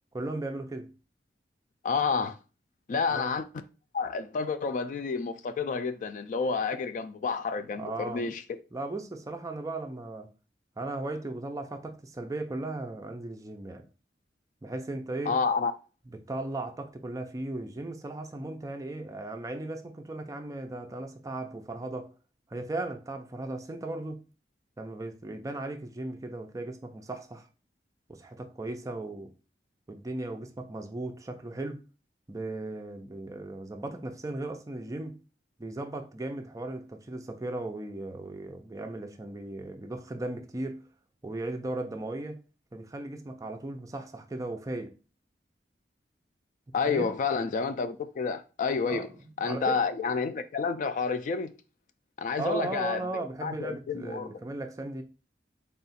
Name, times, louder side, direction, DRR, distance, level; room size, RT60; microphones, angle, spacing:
voice 1, 0.1-0.9 3.1-3.3 7.7-8.3 8.7-10.3 10.8-13.9 14.6-15.4 16.1-22.1 22.5-24.2 24.8-27.5 28.1-29.3 29.9-31.8 32.3-35.2 35.6-40.9 41.2-42.4 42.7-45.0 46.9-47.1 48.9-49.8 52.4-55.0, right 2 dB, 20° right, 0.4 m, -37 dB
voice 2, 1.8-2.4 2.9-3.5 3.9-8.4 15.3-15.7 46.7-49.1 49.4-51.5 52.2-54.3, left 5 dB, 45° left, 0.3 m, -29 dB
3.7 x 2.4 x 4.1 m
head